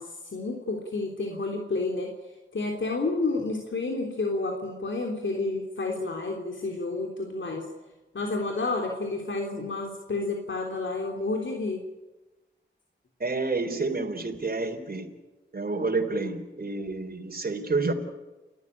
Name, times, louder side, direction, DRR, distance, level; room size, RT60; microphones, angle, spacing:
voice 1, 0.0-2.1 2.5-7.7 8.1-11.8, left 3 dB, 75° left, 1 dB, 3.4 m, -30 dB
voice 2, 13.2-15.1 15.5-17.9, right 3 dB, 50° right, 4 dB, 3.8 m, -29 dB
30.0 x 14.0 x 10.0 m, 1.1 s
wide cardioid pair, 65°, 20 cm